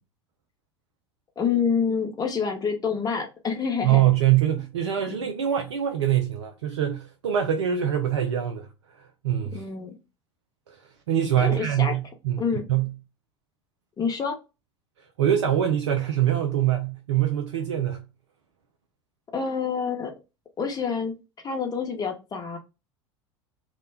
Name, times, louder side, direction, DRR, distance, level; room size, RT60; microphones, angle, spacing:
voice 1, 1.4-4.1 5.1-5.2 9.5-9.9 11.4-11.9 12.4-12.6 14.0-14.4 19.3-20.1 20.6-21.1 21.4-22.6, left 6 dB, 25° left, 0.8 m, -27 dB
voice 2, 3.8-8.7 9.2-9.6 11.1-12.4 12.7-12.9 15.2-18.0, right 11 dB, 75° right, 0.4 m, -23 dB
2.2 x 2.0 x 3.3 m
figure-of-eight pair, 75°, 15 cm